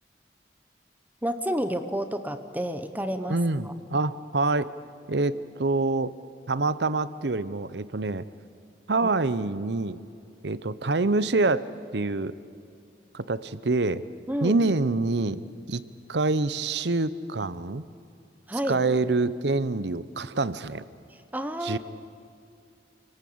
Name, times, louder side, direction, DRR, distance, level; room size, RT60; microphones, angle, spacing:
voice 1, 1.2-3.4 3.6-3.7 14.3-14.6 18.5-18.8 21.1-21.8, equal, 10° right, 9 dB, 1.0 m, -30 dB
voice 2, 3.3-4.7 5.1-6.1 6.5-8.2 8.9-10.0 10.4-11.7 11.9-12.3 13.1-14.0 14.4-15.4 15.7-15.8 16.1-17.8 18.7-20.8 21.6-21.8, right 3 dB, 80° right, 15 dB, 0.9 m, -26 dB
28.0 x 18.0 x 8.7 m, 2.4 s
head